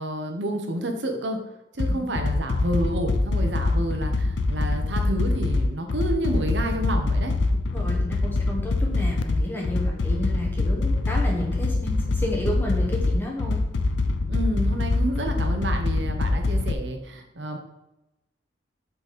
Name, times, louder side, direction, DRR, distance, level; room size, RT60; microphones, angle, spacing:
voice 1, 0.0-1.4 1.7-7.3 14.3-17.6, right 1 dB, 65° right, 4 dB, 1.1 m, -29 dB
sound 1, 1.8-16.7, left 2 dB, 70° left, 0.5 m, -24 dB
voice 2, 7.7-13.7, left 1 dB, 10° left, -1 dB, 1.3 m, -31 dB
7.8 x 4.1 x 4.2 m, 0.94 s
head